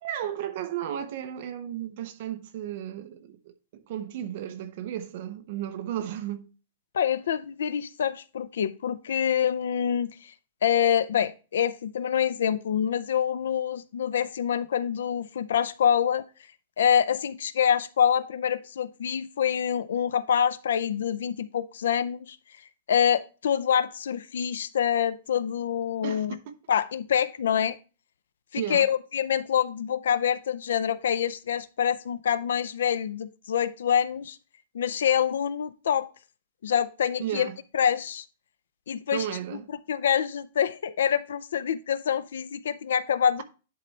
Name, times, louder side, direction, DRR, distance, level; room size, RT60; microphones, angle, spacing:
voice 1, 0.0-6.5 26.0-26.4 28.5-28.9 37.2-37.6 39.1-39.7, right 10 dB, 40° right, 0.7 m, -34 dB
voice 2, 6.9-10.3 10.6-16.2 16.8-22.4 22.9-26.4 26.7-27.8 28.5-34.4 34.7-36.1 36.6-38.2 38.9-39.3 39.9-43.4, left 8 dB, 75° left, 0.5 m, -26 dB
10.5 x 4.0 x 3.2 m
supercardioid pair, 180°, 0 cm